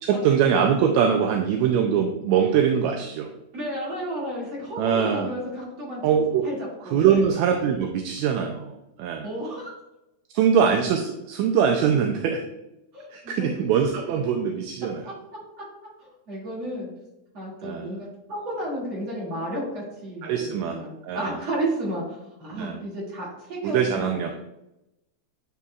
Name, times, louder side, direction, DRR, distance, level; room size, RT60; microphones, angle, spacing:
voice 1, 0.0-3.3 4.8-5.3 6.0-6.4 6.8-8.7 9.0-9.3 10.3-12.4 13.1-15.0 17.6-17.9 20.2-21.3 22.5-22.8 23.6-24.3, right 7 dB, 80° right, 4 dB, 1.7 m, -22 dB
voice 2, 3.5-6.0 6.4-7.2 9.2-9.7 12.9-13.5 15.0-15.1 16.0-16.9 17.3-22.0 22.4-24.3, right 1 dB, 40° right, -6 dB, 2.9 m, -32 dB
9.8 x 4.2 x 2.4 m, 0.90 s
omnidirectional pair, 3.5 m